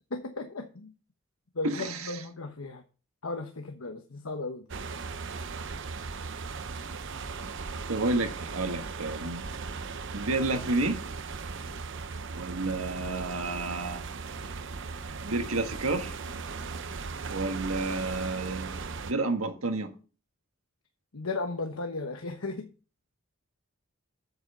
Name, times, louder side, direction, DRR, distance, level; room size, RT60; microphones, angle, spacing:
voice 1, 0.1-0.9 1.5-2.8 3.2-4.6 21.1-22.7, left 3 dB, 90° left, 1.1 m, -35 dB
voice 2, 1.6-2.2 7.9-9.4 10.1-11.0 12.3-14.1 15.2-16.1 17.3-19.9, right 2 dB, 90° right, 1.6 m, -30 dB
sound 1, 4.7-19.1, right 4 dB, 60° right, 0.8 m, -38 dB
8.0 x 7.8 x 5.4 m
head